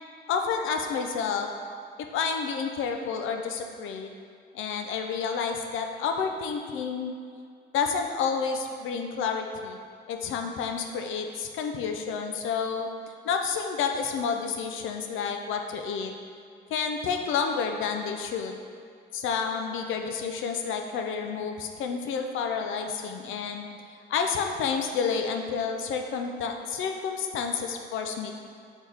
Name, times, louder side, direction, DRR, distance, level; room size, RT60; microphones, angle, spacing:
voice 1, 0.3-1.5 2.0-4.1 4.5-7.1 7.7-9.8 10.1-12.9 13.2-16.1 16.7-18.5 19.1-23.7 24.1-28.3, left 6 dB, 85° left, 4 dB, 0.6 m, -30 dB
6.0 x 4.4 x 3.5 m, 2.3 s
cardioid pair, 90°, 20 cm